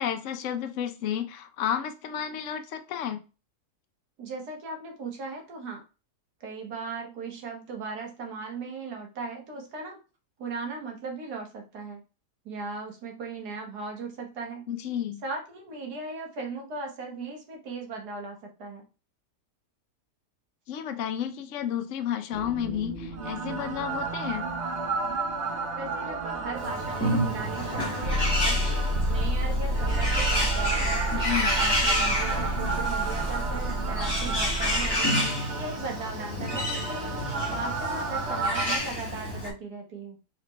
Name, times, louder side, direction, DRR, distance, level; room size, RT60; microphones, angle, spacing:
voice 1, 0.0-3.2 14.7-15.2 20.7-24.4 31.1-31.5, left 9 dB, 65° left, 7 dB, 0.8 m, -31 dB
voice 2, 4.2-5.8 6.4-10.0 10.4-12.0 12.4-14.7 15.2-18.9 25.7-28.7 29.1-31.0 31.6-35.2 35.5-40.2, right 3 dB, 70° right, 1 dB, 1.7 m, -37 dB
sound 1, 22.3-38.8, right 2 dB, 50° right, 1.0 m, -30 dB
Bird, 26.6-39.5, left 1 dB, 15° left, 1.8 m, -30 dB
4.2 x 3.9 x 3.1 m, 0.31 s
omnidirectional pair, 1.8 m